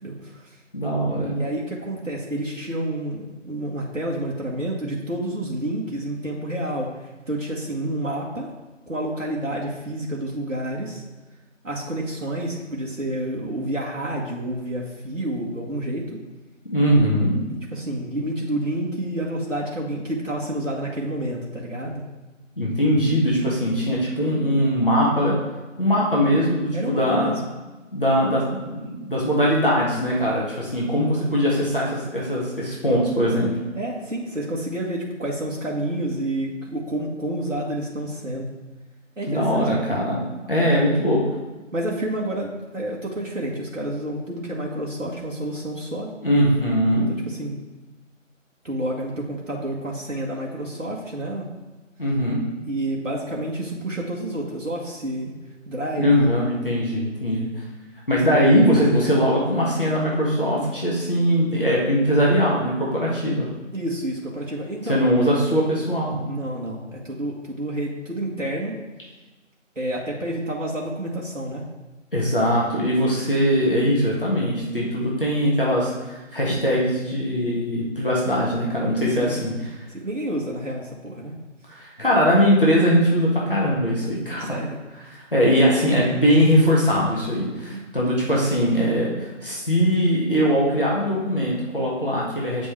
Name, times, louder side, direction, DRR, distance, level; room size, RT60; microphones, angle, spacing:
voice 1, 0.0-0.6 1.3-8.5 8.9-11.0 11.6-16.2 17.5-22.0 26.7-27.4 33.7-38.5 39.2-40.0 40.7-40.9 41.7-46.1 47.1-47.6 48.6-51.5 52.7-55.3 55.6-56.5 63.7-65.0 66.3-68.8 69.7-71.6 79.2-79.4 79.9-81.3 84.3-84.8 87.7-87.8 88.5-88.7, right 1 dB, 75° right, -3 dB, 1.6 m, -29 dB
voice 2, 0.7-1.3 16.7-17.3 22.6-25.4 25.8-27.3 27.9-33.5 39.3-40.2 40.5-41.2 46.2-47.1 52.0-52.4 55.9-57.5 58.1-63.5 64.8-66.2 72.1-79.5 81.7-84.6 85.3-92.7, equal, 45° left, -5 dB, 1.8 m, -21 dB
8.4 x 5.1 x 3.3 m, 1.2 s
figure-of-eight pair, 170°, 39 cm